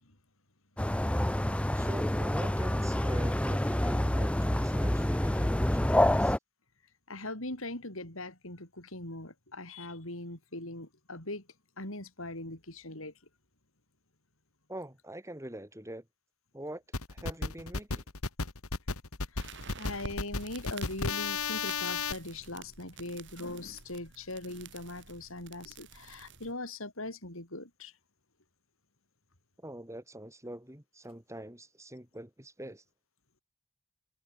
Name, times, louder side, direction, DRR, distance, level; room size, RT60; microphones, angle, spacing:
sound 1, 0.8-6.4, left 1 dB, 5° left, 0.5 m, -27 dB
voice 1, 1.7-6.4 14.7-16.0 16.5-16.8 17.1-18.0 29.6-32.8, right 1 dB, 15° right, 4.7 m, -43 dB
voice 2, 7.1-11.4 11.8-13.1 19.3-27.9, left 2 dB, 65° left, 7.5 m, -41 dB
sound 2, 16.9-22.1, left 4 dB, 90° left, 2.1 m, -33 dB
sound 3, 19.4-26.5, right 4 dB, 55° right, 7.4 m, -50 dB
head